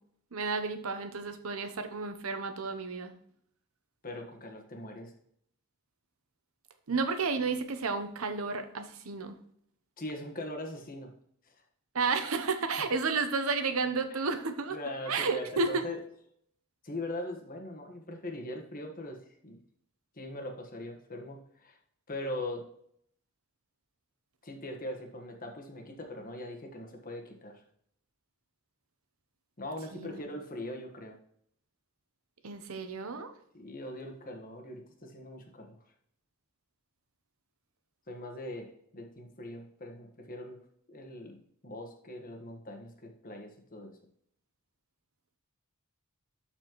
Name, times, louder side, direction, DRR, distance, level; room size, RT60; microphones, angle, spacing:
voice 1, 0.3-3.1 6.9-9.3 11.9-14.8 15.1-15.9 29.9-30.2 32.4-33.3, right 4 dB, 75° right, 8 dB, 0.8 m, -32 dB
voice 2, 4.0-5.1 10.0-11.1 11.5-11.6 14.1-14.2 14.7-16.0 16.8-19.2 19.4-19.6 20.2-21.8 22.1-22.7 24.4-27.6 29.6-31.2 33.5-35.8 38.1-40.6 40.9-44.0, left 1 dB, 40° left, 2 dB, 1.4 m, -41 dB
12.0 x 4.3 x 3.1 m, 0.67 s
head